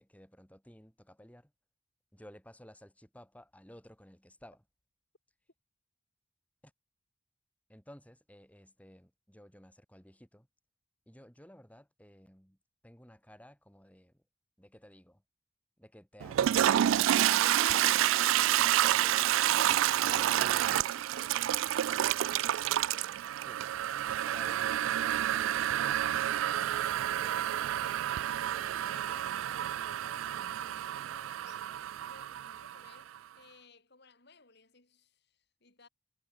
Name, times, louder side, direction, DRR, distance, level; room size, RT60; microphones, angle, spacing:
voice 1, 0.0-1.5 2.1-4.6 6.6-6.7 7.7-10.5 11.1-12.6 12.8-14.2 14.6-15.2 15.8-16.7 20.1-20.7 23.5-23.9 24.3-26.5 27.2-27.8, equal, 5° left, 7.5 m, -55 dB
Toilet flush, 16.2-33.0, right 12 dB, 80° right, 0.3 m, -29 dB
sound 1, 17.7-18.0 19.7-19.9 22.3-22.5 22.9-23.0 24.1-24.3, right 3 dB, 45° right, 7.9 m, -51 dB
voice 2, 19.5-22.3 28.5-31.6 32.1-35.9, left 3 dB, 55° left, 6.0 m, -59 dB
head